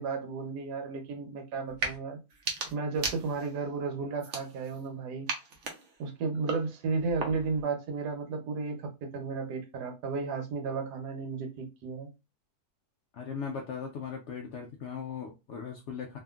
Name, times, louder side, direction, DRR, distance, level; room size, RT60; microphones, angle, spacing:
voice 1, 0.0-2.2 2.7-5.3 6.0-12.1, right 4 dB, 85° right, 1.3 m, -33 dB
sound 1, 1.7-2.0 2.3-3.6 4.2-4.9 5.3-7.6, right 4 dB, 60° right, 0.9 m, -37 dB
voice 2, 13.1-16.2, left 6 dB, 75° left, 0.6 m, -38 dB
2.8 x 2.5 x 2.3 m
omnidirectional pair, 1.7 m